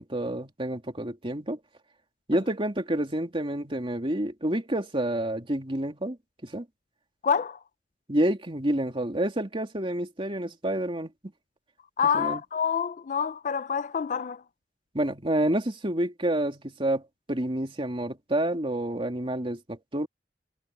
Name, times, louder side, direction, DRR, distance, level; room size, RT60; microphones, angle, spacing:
voice 1, 0.0-1.6 2.3-6.2 6.4-6.6 8.1-11.1 12.1-12.4 14.9-17.0 17.3-20.1, right 1 dB, 30° right, 2.8 m, -28 dB
voice 2, 7.2-7.6 12.0-14.4, left 7 dB, 45° left, 0.4 m, -27 dB
head